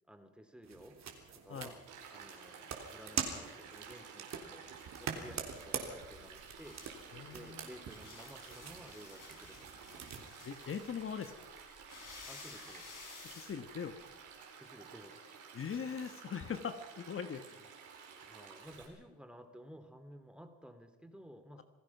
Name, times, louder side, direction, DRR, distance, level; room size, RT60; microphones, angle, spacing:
voice 1, 0.1-1.0 1.3-1.8 2.1-4.6 5.0-6.8 7.3-10.0 12.3-12.9 14.6-15.4 18.2-21.6, equal, 5° right, 8 dB, 2.8 m, -54 dB
sound 1, 0.6-10.2, right 6 dB, 65° right, 3.6 m, -44 dB
Stream, 1.9-18.9, right 6 dB, 85° right, 4.9 m, -53 dB
sound 2, 6.0-14.4, left 5 dB, 85° left, 6.5 m, -55 dB
voice 2, 7.1-7.7 10.4-11.3 13.3-13.9 15.5-17.4, left 7 dB, 45° left, 9 dB, 1.4 m, -40 dB
27.5 x 16.5 x 6.0 m, 1.1 s
cardioid pair, 90°, 30 cm